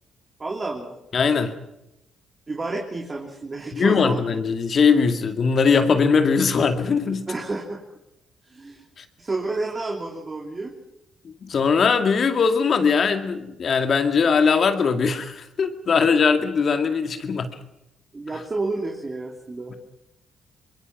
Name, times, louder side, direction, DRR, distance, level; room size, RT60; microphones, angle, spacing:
voice 1, 0.4-1.0 2.5-4.2 7.3-7.8 8.5-8.9 9.2-10.7 18.1-19.7, right 3 dB, 30° right, 1 dB, 3.2 m, -30 dB
voice 2, 1.1-1.5 3.7-7.2 9.0-9.1 11.2-17.5 19.7-19.8, left 5 dB, 55° left, 7 dB, 2.2 m, -20 dB
25.0 x 21.5 x 6.1 m, 0.86 s
supercardioid pair, 65°, 0 cm